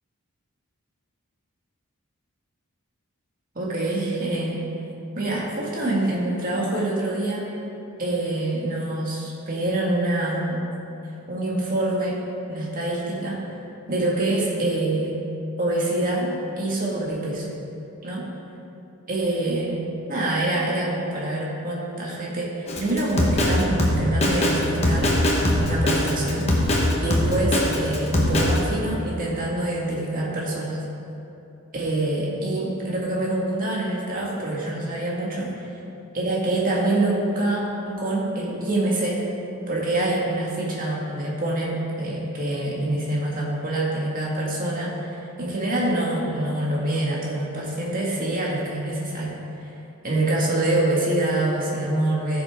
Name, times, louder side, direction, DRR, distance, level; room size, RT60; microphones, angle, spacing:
voice 1, 3.6-4.6 5.2-7.4 8.0-10.7 11.3-12.2 12.5-13.4 13.9-15.2 15.6-17.6 18.0-18.3 19.1-19.8 20.1-25.1 25.5-30.8 31.7-35.7 36.1-39.2 39.7-49.3 49.6-49.7 50.0-52.4, right 1 dB, 40° right, -4 dB, 2.1 m, -25 dB
Drum kit, 22.7-28.6, left 1 dB, 30° left, 1.3 m, -21 dB
15.5 x 7.0 x 3.7 m, 2.9 s
head